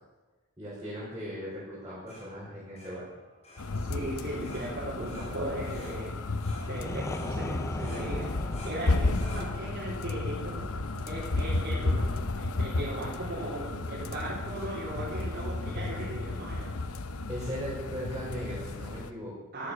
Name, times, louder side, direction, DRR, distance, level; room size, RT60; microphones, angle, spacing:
voice 1, 0.6-3.1 16.8-16.9 17.3-19.5, equal, 15° right, -8 dB, 5.1 m, -38 dB
sound 1, 1.7-11.4, left 1 dB, 30° left, 4.9 m, -51 dB
sound 2, 3.6-19.1, left 2 dB, 65° left, 0.9 m, -33 dB
voice 2, 3.7-6.1 6.6-8.3 8.6-10.6 11.0-16.8 19.5-19.7, right 1 dB, 40° right, -7 dB, 3.9 m, -37 dB
sound 3, 6.1-11.8, left 1 dB, 15° left, 0.6 m, -41 dB
13.5 x 12.0 x 7.1 m, 1.2 s
head